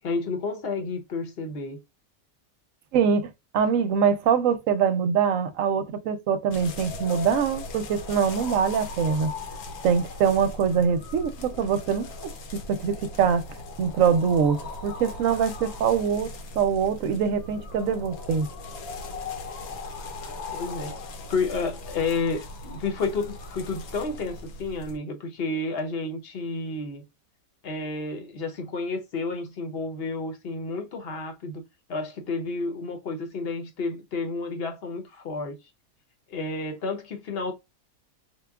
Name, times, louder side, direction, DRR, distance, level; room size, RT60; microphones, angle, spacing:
voice 1, 0.0-1.8 20.2-21.0 21.3-27.0 27.6-31.6 31.9-35.6 36.3-37.5, left 3 dB, 50° left, 0.9 m, -31 dB
voice 2, 2.9-9.3 9.8-14.6 14.8-18.5, right 7 dB, 70° right, 0.9 m, -24 dB
sound 1, 6.5-25.0, left 3 dB, 75° left, 1.1 m, -39 dB
4.6 x 2.2 x 2.2 m
omnidirectional pair, 1.5 m